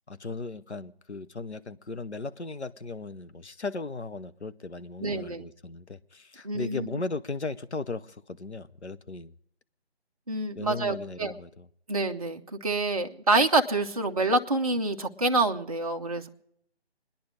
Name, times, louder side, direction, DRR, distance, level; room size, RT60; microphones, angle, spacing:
voice 1, 0.1-9.3 10.6-11.7, left 3 dB, 85° left, 0.8 m, -37 dB
voice 2, 5.0-5.4 6.4-6.9 10.3-11.3 11.9-16.3, right 2 dB, 35° right, 0.6 m, -27 dB
25.5 x 10.5 x 5.0 m
figure-of-eight pair, 155°, 33 cm